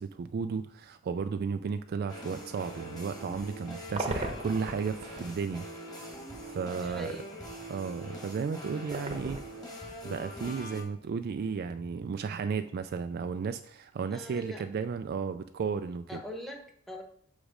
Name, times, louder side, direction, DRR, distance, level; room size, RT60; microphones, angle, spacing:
voice 1, 0.0-5.7 6.5-7.2 7.7-9.4 10.0-16.2, right 5 dB, 45° right, 9 dB, 0.3 m, -34 dB
sound 1, 2.1-10.8, equal, 20° left, 1.6 m, -43 dB
sound 2, 3.5-5.6 6.1-6.2 8.8-10.0 10.3-10.4 13.9-14.4 14.7-14.9, right 2 dB, 30° right, 0.9 m, -37 dB
voice 2, 6.7-7.3 14.1-14.6 16.1-17.0, equal, ahead, 2 dB, 1.0 m, -42 dB
6.3 x 5.0 x 5.0 m, 0.65 s
head